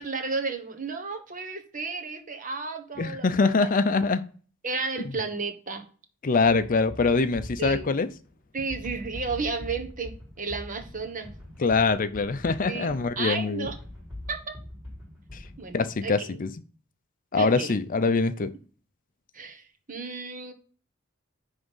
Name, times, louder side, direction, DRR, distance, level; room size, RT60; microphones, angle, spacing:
voice 1, 0.0-3.3 3.6-3.7 4.6-5.8 7.6-7.9 8.5-10.1 10.4-11.3 12.7-13.8 14.3-14.6 15.6-16.4 17.3-17.7 19.3-20.5, right 4 dB, 40° right, 1.3 m, -33 dB
voice 2, 3.0-4.3 6.2-8.1 11.6-13.7 15.7-16.5 17.3-18.5, left 4 dB, 45° left, 0.5 m, -24 dB
sound 1, 6.4-16.0, left 1 dB, 5° right, 4.8 m, -43 dB
10.5 x 3.5 x 5.5 m
head